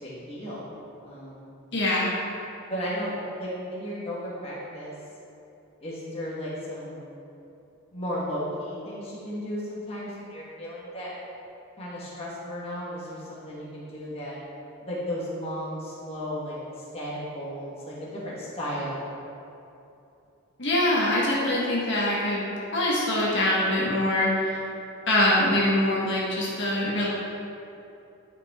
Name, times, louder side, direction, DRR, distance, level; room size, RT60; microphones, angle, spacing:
voice 1, 0.0-0.6 1.0-1.5 2.7-4.9 5.8-7.1 7.9-11.1 11.8-14.4 14.8-19.0, equal, 25° left, -8 dB, 1.6 m, -34 dB
voice 2, 1.7-2.1 20.6-22.4 22.7-24.6 25.1-27.1, left 1 dB, 55° left, -6 dB, 1.6 m, -23 dB
11.0 x 5.3 x 3.7 m, 2.8 s
head